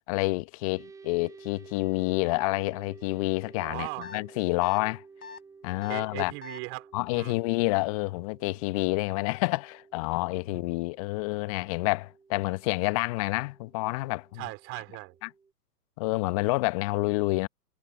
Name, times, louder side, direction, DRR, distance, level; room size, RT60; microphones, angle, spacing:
voice 1, 0.1-5.0 5.6-6.3 6.9-14.4 15.2-15.3 16.0-17.5, left 24 dB, 20° left, 0.9 m, -28 dB
sound 1, 0.8-15.5, right 5 dB, 5° right, 2.4 m, -53 dB
voice 2, 3.6-4.1 5.9-7.4 10.5-10.6 14.4-15.2, right 25 dB, 25° right, 3.8 m, -38 dB
sound 2, 4.0-4.2 4.6-4.8 5.2-5.4 5.8-6.0 6.4-6.6, left 5 dB, 65° left, 1.7 m, -43 dB
hypercardioid pair, 135°, 48 cm